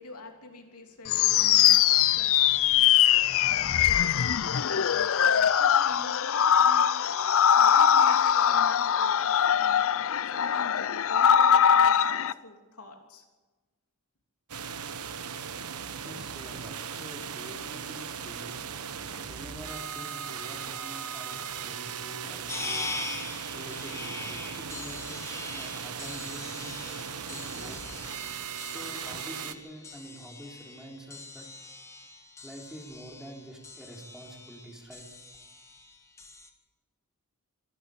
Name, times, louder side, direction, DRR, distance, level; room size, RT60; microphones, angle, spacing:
voice 1, 0.0-2.6 3.5-9.8 10.3-13.2, left 2 dB, 85° left, 3 dB, 3.0 m, -46 dB
sound 1, 1.1-12.3, left 9 dB, 65° left, 0.5 m, -22 dB
sound 2, 14.5-29.5, right 7 dB, 85° right, 1.2 m, -38 dB
voice 2, 15.9-18.6 19.3-22.9 23.5-27.8 28.6-31.5 32.4-35.1, equal, 5° right, 0 dB, 3.8 m, -46 dB
sound 3, 22.5-36.5, left 3 dB, 15° left, 1.7 m, -42 dB
26.0 x 12.0 x 8.5 m, 1.2 s
head